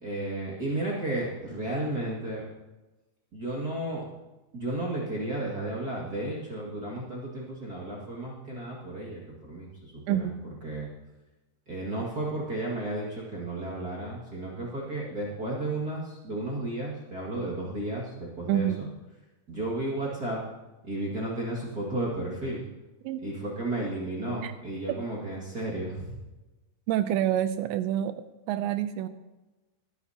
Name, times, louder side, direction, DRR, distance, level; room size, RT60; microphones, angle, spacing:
voice 1, 0.0-2.4 3.3-4.0 4.5-10.3 10.6-10.9 11.7-18.9 19.5-20.4 20.8-22.7 23.2-26.1, right 1 dB, 55° right, -5 dB, 1.0 m, -33 dB
voice 2, 10.1-10.4 18.5-18.8 23.0-23.2 24.4-24.5 24.9-25.0 26.9-29.1, right 11 dB, 85° right, 11 dB, 2.7 m, -27 dB
21.0 x 11.5 x 2.9 m, 1.1 s
omnidirectional pair, 5.4 m